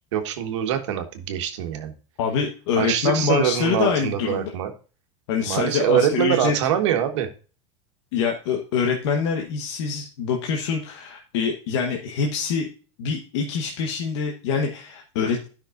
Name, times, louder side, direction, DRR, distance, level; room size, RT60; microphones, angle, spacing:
voice 1, 0.1-1.9 2.8-4.7 5.5-7.3, right 10 dB, 80° right, 6 dB, 1.5 m, -24 dB
voice 2, 2.2-4.5 5.3-6.5 8.1-12.7 13.0-15.5, left 6 dB, 70° left, 1 dB, 1.3 m, -25 dB
13.0 x 5.8 x 2.5 m, 0.36 s
supercardioid pair, 160°, 15 cm